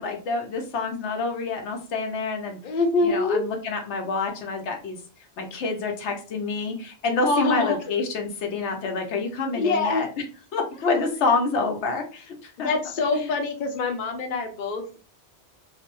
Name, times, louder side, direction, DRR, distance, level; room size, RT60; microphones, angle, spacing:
voice 1, 0.0-2.6 3.0-5.0 5.4-10.1 10.5-12.7 13.1-13.3, left 3 dB, 85° left, 3 dB, 0.9 m, -27 dB
voice 2, 2.6-3.4 7.2-7.8 9.5-10.0 12.6-15.0, left 3 dB, 55° left, 4 dB, 0.7 m, -24 dB
2.5 x 2.0 x 2.9 m, 0.36 s
omnidirectional pair, 1.2 m